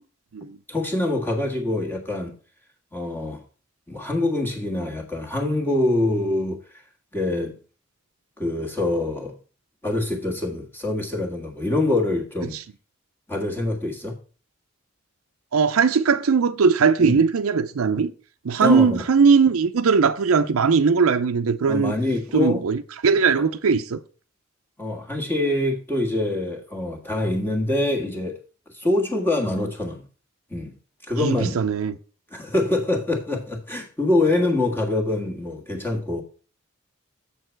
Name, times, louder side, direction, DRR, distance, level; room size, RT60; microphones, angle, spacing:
voice 1, 0.7-2.3 2.9-3.4 3.9-6.6 7.1-7.5 8.4-9.4 9.8-12.6 13.3-14.2 17.0-17.2 18.6-19.0 21.7-22.6 23.4-23.5 24.8-28.4 28.7-30.0 30.5-30.8 31.0-31.6 32.3-36.2, left 2 dB, 10° left, 1.6 m, -25 dB
voice 2, 15.5-18.1 18.4-21.9 22.3-24.0 31.2-31.9, right 5 dB, 90° right, 0.5 m, -19 dB
7.2 x 6.6 x 4.5 m
head